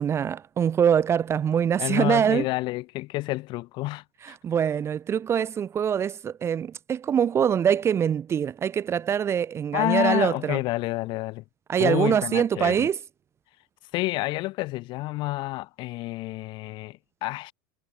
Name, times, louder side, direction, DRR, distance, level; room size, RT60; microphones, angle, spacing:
voice 1, 0.0-2.5 4.2-10.6 11.7-13.0, right 8 dB, 25° right, 1.0 m, -24 dB
voice 2, 1.8-4.4 9.7-11.4 11.8-12.9 13.9-17.5, left 20 dB, 50° left, 4.7 m, -29 dB
hypercardioid pair, 115°, 11 cm